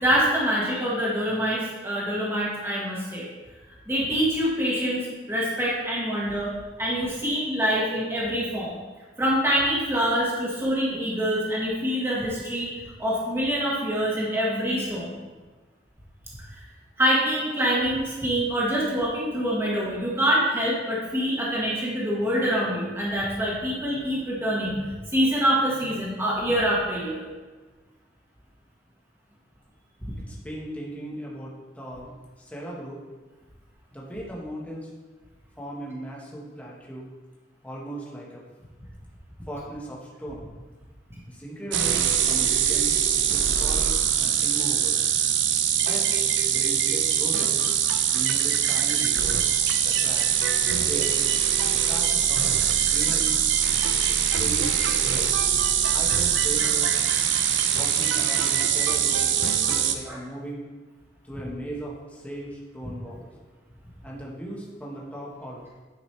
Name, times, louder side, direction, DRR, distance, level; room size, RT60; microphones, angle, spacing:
voice 1, 0.0-3.3 3.9-6.5 6.8-8.7 9.2-12.7 13.0-15.1 17.0-27.2 56.6-56.7 60.0-60.2, equal, 15° right, -6 dB, 1.6 m, -25 dB
voice 2, 30.2-32.1 32.4-33.0 33.9-34.9 35.6-37.1 37.6-38.4 39.5-40.5 41.3-45.0 45.8-46.1 46.5-47.6 48.1-49.5 49.8-50.3 50.7-51.2 51.9-52.4 52.9-53.4 54.3-55.4 55.8-56.9 57.7-59.2 59.7-60.6 61.2-63.3 64.0-65.6, right 1 dB, 10° left, -4 dB, 1.3 m, -37 dB
sound 1, 41.7-60.0, right 8 dB, 85° right, 0.6 m, -23 dB
9.6 x 5.1 x 3.3 m, 1.3 s
head